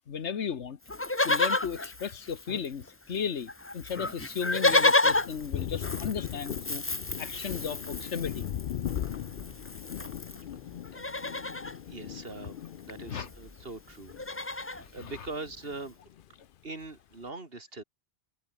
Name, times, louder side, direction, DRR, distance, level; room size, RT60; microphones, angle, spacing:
voice 1, 0.1-0.8 1.2-6.8 7.2-8.5 10.9-11.0 13.1-13.3 14.8-14.9, left 7 dB, 85° left, 1.5 m, -35 dB
Livestock farm animals working animals, 0.9-2.9 3.1-3.2 3.5-10.4 10.8-11.8 13.0-13.1 13.3-13.5 13.9-14.8 15.5-15.6, left 2 dB, 15° left, 0.8 m, -30 dB
Thunder, 5.1-14.8 15.1-16.3, left 10 dB, 60° left, 0.7 m, -39 dB
voice 2, 11.9-16.0 16.6-17.8, right 3 dB, 60° right, 3.0 m, -42 dB
omnidirectional pair, 1.1 m